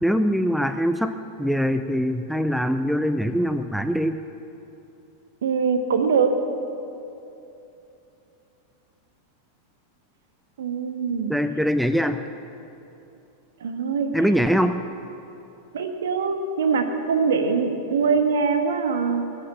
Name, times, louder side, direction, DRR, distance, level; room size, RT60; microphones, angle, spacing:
voice 1, 0.0-4.2 11.3-12.2 14.1-14.8, equal, ahead, 9 dB, 0.5 m, -23 dB
voice 2, 5.4-6.3 10.6-11.3 13.6-14.1 15.7-19.3, right 5 dB, 60° right, 6 dB, 1.5 m, -23 dB
21.0 x 8.8 x 7.6 m, 2.8 s
figure-of-eight pair, 90°, 0 cm